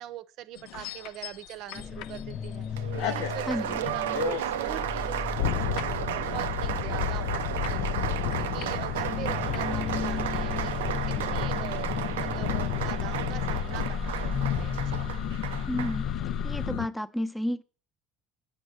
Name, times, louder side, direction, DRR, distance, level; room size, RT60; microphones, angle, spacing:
voice 1, 0.0-4.0 4.4-10.7 11.1-15.0, right 12 dB, 60° right, 14 dB, 0.7 m, -43 dB
sound 1, 0.6-2.6 2.9-16.9, left 11 dB, 65° left, 0.4 m, -34 dB
sound 2, 1.7-16.7, left 6 dB, 45° left, 0.8 m, -34 dB
Applause, 2.8-16.0, right 11 dB, 80° right, 0.4 m, -33 dB
voice 2, 3.5-3.8 15.7-16.1 16.4-17.6, left 1 dB, 5° left, 11 dB, 0.7 m, -31 dB
8.7 x 6.1 x 6.7 m, 0.39 s
hypercardioid pair, 65°, 0 cm